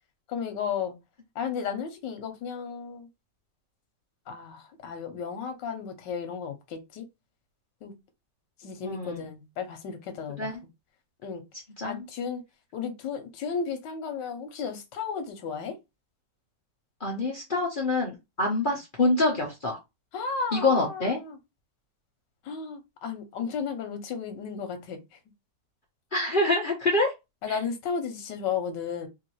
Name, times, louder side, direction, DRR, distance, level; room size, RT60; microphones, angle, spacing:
voice 1, 0.3-1.0 1.3-3.1 4.3-7.0 7.8-7.9 8.6-10.5 11.2-11.4 11.8-12.4 12.7-15.8 20.1-21.4 22.4-25.0 27.4-29.1, left 6 dB, 85° left, 1.4 m, -34 dB
voice 2, 8.8-9.3 10.4-10.6 11.8-12.0 17.0-19.8 20.5-21.2 26.1-27.1 27.5-27.6, left 2 dB, 40° left, 0.8 m, -26 dB
3.8 x 2.7 x 3.0 m
omnidirectional pair, 1.9 m